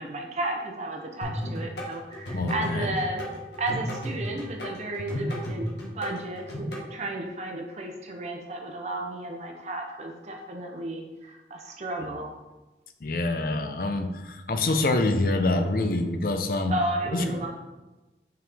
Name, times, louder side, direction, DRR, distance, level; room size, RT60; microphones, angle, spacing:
voice 1, 0.0-3.3 3.6-12.4 15.4-15.5 16.7-17.5, right 1 dB, 40° right, 2 dB, 0.7 m, -33 dB
sound 1, 1.2-6.8, equal, 85° left, 1.6 m, -34 dB
voice 2, 2.3-2.9 5.1-5.2 13.0-16.8 17.1-17.4, left 2 dB, 55° left, 7 dB, 0.6 m, -26 dB
6.2 x 4.8 x 3.5 m, 1.1 s
head